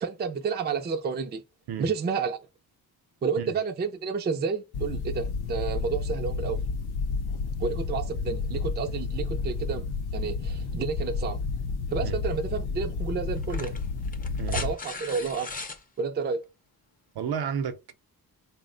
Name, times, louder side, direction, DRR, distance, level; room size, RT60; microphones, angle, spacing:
voice 1, 0.0-1.4 1.8-2.4 3.2-6.6 7.6-9.9 10.1-11.4 11.9-13.7 14.5-15.5 16.0-16.4, right 5 dB, 30° right, 0.4 m, -30 dB
sound 1, 4.7-14.7, left 4 dB, 80° left, 0.6 m, -31 dB
sound 2, 12.2-12.4 13.4-15.8 17.3-17.4, left 3 dB, 25° left, 0.5 m, -38 dB
voice 2, 17.1-17.9, right 7 dB, 80° right, 0.7 m, -32 dB
4.0 x 2.1 x 3.7 m
wide cardioid pair, 155°, 37 cm